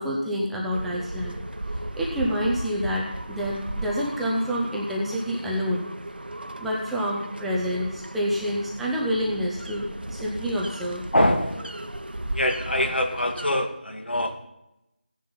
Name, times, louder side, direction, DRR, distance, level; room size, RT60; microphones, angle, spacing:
voice 1, 0.0-1.4 1.9-5.8 6.6-11.1, equal, ahead, -4 dB, 0.6 m, -28 dB
sound 1, 0.7-13.5, right 1 dB, 75° right, 1.2 m, -36 dB
voice 2, 11.1-11.7 12.3-14.5, left 1 dB, 90° left, 5 dB, 2.2 m, -24 dB
16.0 x 10.0 x 4.1 m, 0.89 s
figure-of-eight pair, 170°, 5 cm